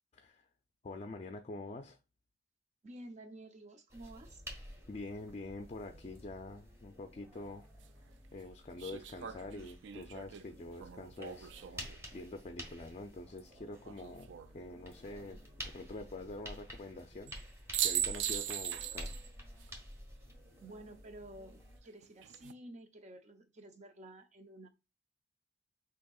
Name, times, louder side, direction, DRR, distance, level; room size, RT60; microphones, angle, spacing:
voice 1, 0.1-0.5 0.8-2.0 4.9-7.7 8.3-17.3 17.8-19.2, left 2 dB, 35° left, 0.4 m, -46 dB
voice 2, 2.8-4.4 20.6-24.7, right 1 dB, 40° right, 0.7 m, -51 dB
sound 1, 3.9-21.8, equal, 15° right, 1.4 m, -51 dB
sound 2, 7.3-7.4 8.8-12.0 13.8-14.5 17.3-17.4 17.7-19.3 19.6-19.7 22.0-22.5, right 10 dB, 85° right, 0.4 m, -39 dB
6.3 x 2.9 x 2.3 m
head